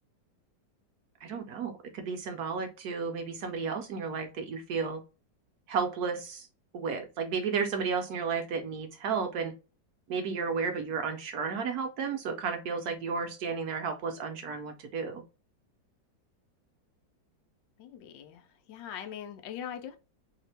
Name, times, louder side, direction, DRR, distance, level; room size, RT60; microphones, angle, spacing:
voice 1, 1.2-5.0 5.7-6.5 6.7-9.5 10.1-15.2, right 5 dB, 70° right, 1.0 m, -33 dB
voice 2, 17.8-20.0, left 9 dB, 80° left, 1.3 m, -42 dB
3.7 x 2.9 x 3.2 m
omnidirectional pair, 2.0 m